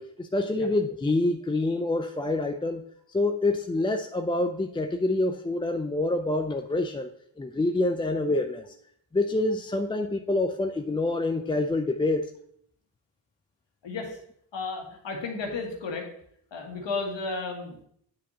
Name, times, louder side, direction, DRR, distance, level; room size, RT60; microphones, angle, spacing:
voice 1, 0.0-2.8 3.1-7.1 7.4-8.6 9.1-12.3, left 2 dB, 10° left, 5 dB, 0.3 m, -26 dB
voice 2, 14.5-16.0 16.5-17.8, left 3 dB, 75° left, 1 dB, 1.7 m, -33 dB
9.3 x 5.0 x 2.8 m, 0.67 s
cardioid pair, 70°, 44 cm